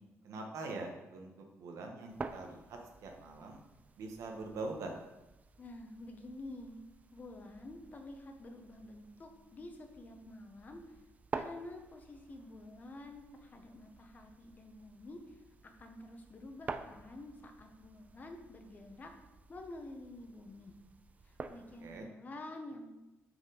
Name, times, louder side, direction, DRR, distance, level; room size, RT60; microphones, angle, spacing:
voice 1, 0.2-3.6 4.0-4.9 21.8-22.1, right 3 dB, 80° right, 2 dB, 1.3 m, -43 dB
sound 1, 2.1-22.0, right 4 dB, 30° right, 0.4 m, -50 dB
voice 2, 5.6-6.8 7.1-11.0 11.3-19.1 19.5-20.7 21.2-23.0, left 2 dB, 30° left, 4 dB, 0.9 m, -49 dB
6.0 x 5.2 x 5.0 m, 0.99 s
cardioid pair, 135°, 5 cm